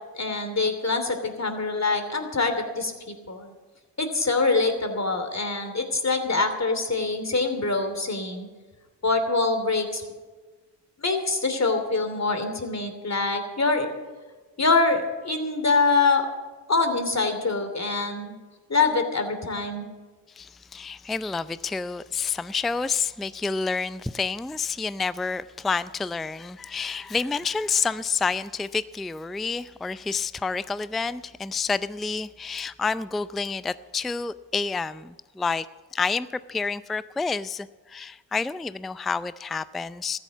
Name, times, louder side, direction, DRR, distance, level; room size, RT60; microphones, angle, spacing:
voice 1, 0.1-3.5 4.0-8.5 9.0-10.0 11.0-13.9 14.6-16.2 16.7-18.4 18.7-19.9, left 3 dB, 35° left, 7 dB, 3.0 m, -24 dB
voice 2, 20.3-35.7 35.9-40.2, left 4 dB, ahead, 16 dB, 0.4 m, -29 dB
14.0 x 11.0 x 7.3 m, 1.3 s
supercardioid pair, 45°, 45 cm